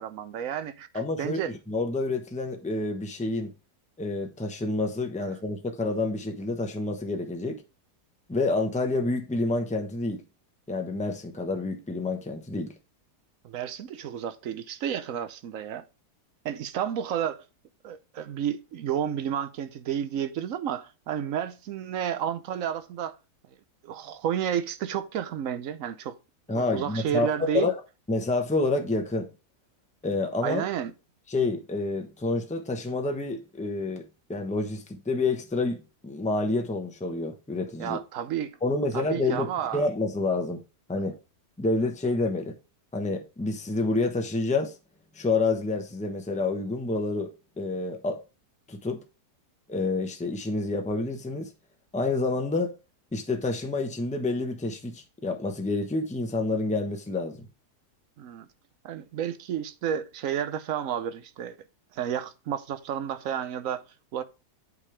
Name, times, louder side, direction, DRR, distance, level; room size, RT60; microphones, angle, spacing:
voice 1, 0.0-0.9 1.2-1.5 13.4-15.8 16.4-17.4 17.8-23.2 23.8-26.2 26.5-27.7 30.4-30.9 37.8-38.6 38.9-39.9 58.2-58.5 58.8-61.6 61.9-63.8 64.1-64.2, right 9 dB, 65° right, 1.0 m, -31 dB
voice 2, 0.9-3.5 4.0-7.6 8.3-10.2 10.7-12.7 26.5-27.7 28.1-29.3 30.0-30.6 31.3-34.0 34.3-38.0 38.6-40.6 40.9-41.2 41.6-42.5 42.9-44.7 45.1-47.3 47.6-48.2 48.7-49.0 49.7-51.5 51.9-52.7 53.1-57.5, left 3 dB, 5° left, 0.8 m, -28 dB
8.3 x 5.2 x 3.3 m
omnidirectional pair, 1.7 m